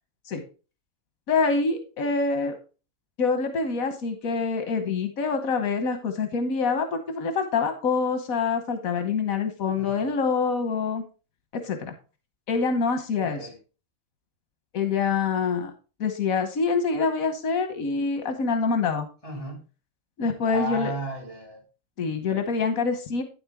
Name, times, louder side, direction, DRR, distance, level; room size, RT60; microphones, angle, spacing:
voice 1, 1.3-2.6 3.2-11.0 11.5-11.9 12.5-13.4 14.7-15.7 16.0-19.1 20.2-20.9 22.0-23.2, left 4 dB, 85° left, 1.5 m, -25 dB
voice 2, 9.8-10.1 13.2-13.6 19.2-19.6 20.5-21.6, equal, 25° left, 2.7 m, -34 dB
9.4 x 7.9 x 3.5 m
omnidirectional pair, 1.4 m